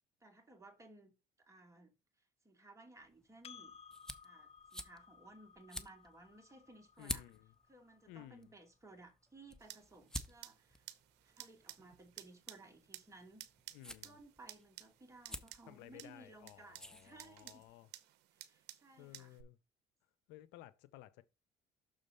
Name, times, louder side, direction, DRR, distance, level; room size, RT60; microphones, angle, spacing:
voice 1, 0.2-1.1 1.4-3.8 4.2-7.2 7.7-10.8 11.2-13.5 13.8-17.6 18.3-19.4, right 2 dB, 15° right, 2.4 m, -59 dB
sound 1, 3.0-17.7, left 1 dB, 5° left, 0.8 m, -52 dB
Percussion, 3.4-8.3, left 7 dB, 35° left, 0.4 m, -59 dB
voice 2, 7.0-7.5 8.1-8.5 13.7-14.2 15.7-17.9 19.0-19.6 20.3-21.2, left 15 dB, 80° left, 0.6 m, -56 dB
sound 2, 9.6-19.4, right 14 dB, 75° right, 0.8 m, -56 dB
6.5 x 3.7 x 5.5 m
supercardioid pair, 90°, 18 cm